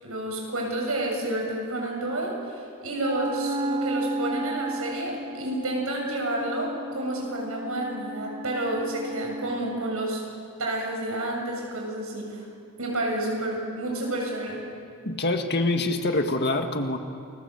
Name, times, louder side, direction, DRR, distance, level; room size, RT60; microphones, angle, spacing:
voice 1, 0.0-10.2 10.6-12.4 12.8-14.7, right 1 dB, 70° right, 0 dB, 7.4 m, -30 dB
Wind instrument woodwind instrument, 3.0-9.6, right 1 dB, 25° right, 1.5 m, -33 dB
voice 2, 15.0-17.0, left 2 dB, 50° left, 5 dB, 1.9 m, -25 dB
30.0 x 21.5 x 8.1 m, 2.3 s
head